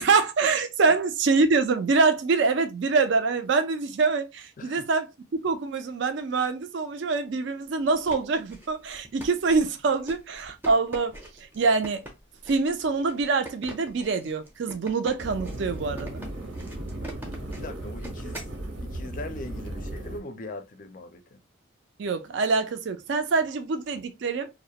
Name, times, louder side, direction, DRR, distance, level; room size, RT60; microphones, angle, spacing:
voice 1, 0.0-5.1 5.4-11.1 11.5-12.0 12.5-16.2 22.0-24.5, right 4 dB, 65° right, 0.4 m, -25 dB
voice 2, 4.6-4.9 17.5-18.5 18.8-21.4, left 2 dB, 40° left, 0.4 m, -40 dB
sound 1, 7.8-18.6, right 1 dB, 10° right, 0.5 m, -43 dB
sound 2, 15.2-20.2, right 1 dB, 85° right, 0.8 m, -36 dB
2.3 x 2.1 x 2.7 m
head